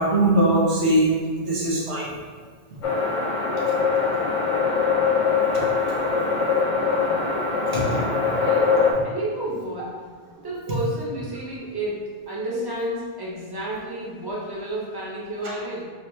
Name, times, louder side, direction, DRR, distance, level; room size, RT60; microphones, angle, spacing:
voice 1, 0.0-2.1 7.7-8.3, right 1 dB, 90° right, -7 dB, 1.3 m, -21 dB
sound 1, 2.8-8.9, left 5 dB, 60° left, 0.3 m, -22 dB
voice 2, 8.4-15.8, right 1 dB, 25° right, -5 dB, 0.8 m, -31 dB
4.0 x 2.8 x 3.2 m, 1.6 s
omnidirectional pair, 1.1 m